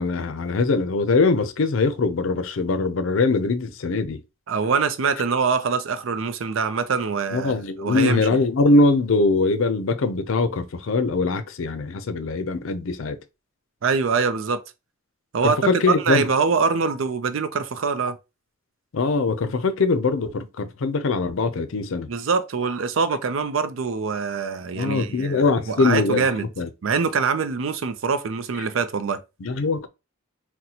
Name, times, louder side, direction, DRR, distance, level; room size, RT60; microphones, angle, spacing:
voice 1, 0.0-4.2 7.3-13.2 15.4-16.3 18.9-22.1 24.7-26.7 29.4-29.9, left 3 dB, 75° left, 0.5 m, -22 dB
voice 2, 4.5-8.3 13.8-14.6 15.3-15.6 15.9-18.2 22.1-26.5 26.8-29.2, right 5 dB, 70° right, 0.5 m, -24 dB
4.0 x 2.1 x 2.8 m
head